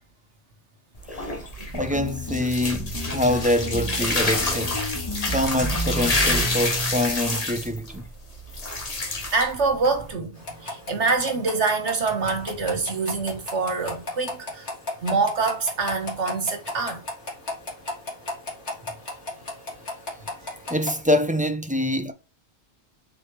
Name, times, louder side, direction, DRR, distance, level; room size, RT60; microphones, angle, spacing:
sound 1, 1.0-10.1, left 2 dB, 35° left, 1.3 m, -28 dB
sound 2, 1.7-7.1, equal, 15° left, 1.9 m, -31 dB
voice 1, 1.7-8.0 20.7-22.1, left 1 dB, 10° right, 0.5 m, -25 dB
voice 2, 9.0-10.3 10.6-14.7 15.0-17.0, right 4 dB, 75° right, 1.8 m, -25 dB
sound 3, 10.4-21.0, left 2 dB, 75° left, 2.3 m, -36 dB
7.1 x 4.2 x 3.2 m
omnidirectional pair, 1.2 m